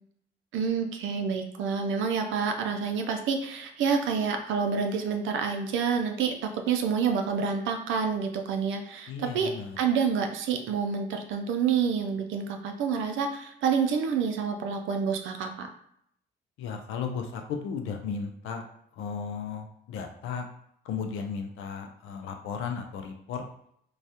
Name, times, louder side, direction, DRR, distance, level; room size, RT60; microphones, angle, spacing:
voice 1, 0.5-15.7, right 6 dB, 80° right, 4 dB, 0.4 m, -28 dB
voice 2, 9.1-9.8 16.6-18.6 18.9-20.5 20.8-23.4, left 6 dB, 85° left, 5 dB, 0.4 m, -35 dB
2.3 x 2.1 x 2.7 m, 0.71 s
cardioid pair, 90°, 20 cm